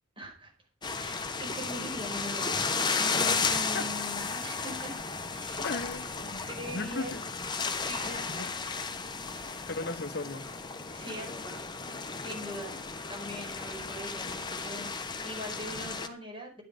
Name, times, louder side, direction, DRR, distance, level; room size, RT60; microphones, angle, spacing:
voice 1, 0.2-0.5 0.9-4.9 5.3-5.8 6.4-7.1 7.9-8.4 10.9-11.6 12.2-12.8 13.1-14.9 15.2-16.6, equal, 25° right, 0 dB, 5.2 m, -42 dB
sound 1, 0.8-16.1, left 4 dB, 20° left, 1.1 m, -34 dB
voice 2, 5.6-7.2 8.3-8.5 9.5-10.5, left 3 dB, 50° left, 10 dB, 0.9 m, -37 dB
11.5 x 9.7 x 5.1 m, 0.35 s
head